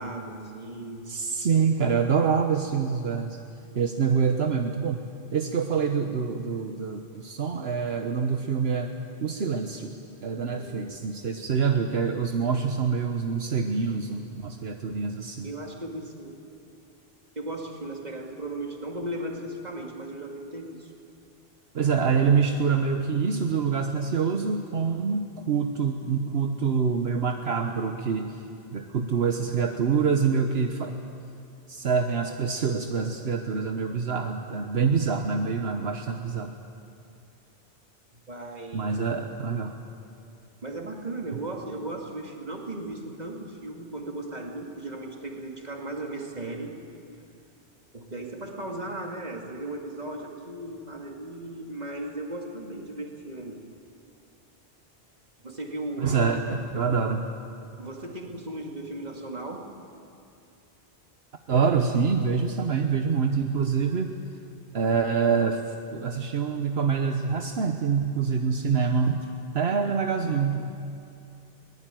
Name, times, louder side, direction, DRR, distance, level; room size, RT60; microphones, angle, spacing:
voice 1, 0.0-1.1 10.5-11.0 15.4-16.4 17.4-20.9 38.3-39.0 40.6-46.7 47.9-53.6 55.4-56.2 57.8-59.6, right 2 dB, 40° right, 1 dB, 2.5 m, -36 dB
voice 2, 1.1-3.4 3.7-5.1 5.3-8.9 9.2-9.9 10.2-15.5 21.7-28.4 28.7-30.9 31.7-36.5 38.7-39.7 56.0-57.3 61.5-64.1 64.7-69.3 69.5-70.7, right 5 dB, 75° right, 5 dB, 1.3 m, -26 dB
22.5 x 19.0 x 9.1 m, 2.6 s
omnidirectional pair, 1.1 m